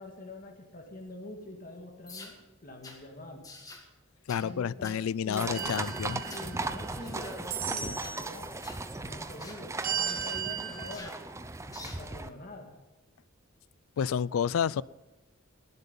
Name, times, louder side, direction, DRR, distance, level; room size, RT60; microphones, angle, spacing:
voice 1, 0.0-3.5 4.4-4.9 5.2-5.7 6.0-8.5 9.0-11.1 11.8-12.7, left 1 dB, 40° left, 1.7 m, -45 dB
sound 1, 2.1-2.4 2.8-3.0 3.4-3.9 4.3-4.5 4.8-5.0 5.3-5.9 6.3-6.5 7.0-7.4 7.9-8.2 8.6-8.9 9.4-9.6 10.1-10.2 10.9-11.2 11.7-12.0, left 3 dB, 20° left, 1.7 m, -47 dB
voice 2, 4.3-6.2 14.0-14.8, left 7 dB, 90° left, 0.4 m, -30 dB
sound 2, 5.4-12.3, right 2 dB, 15° right, 0.6 m, -37 dB
sound 3, 5.5-7.0 7.5-8.4 9.8-10.9, right 8 dB, 45° right, 1.4 m, -36 dB
18.0 x 8.0 x 5.4 m
head